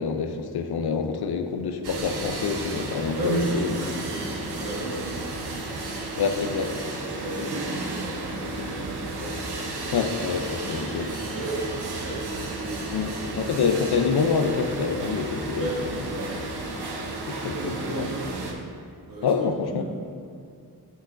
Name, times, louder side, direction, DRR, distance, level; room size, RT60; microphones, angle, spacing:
voice 1, 0.0-3.7 5.8-6.8 9.9-11.1 12.9-15.7 17.3-18.1 19.2-19.8, left 5 dB, 80° left, 7 dB, 0.6 m, -27 dB
sound 1, 1.8-18.5, right 2 dB, 85° right, 0.8 m, -33 dB
voice 2, 3.1-5.1 5.5-5.8 7.2-9.5 10.7-13.5 15.5-16.3 17.4-18.7 19.1-19.8, right 2 dB, 60° right, -4 dB, 1.4 m, -34 dB
8.1 x 6.0 x 2.5 m, 2.4 s
wide cardioid pair, 95°, 38 cm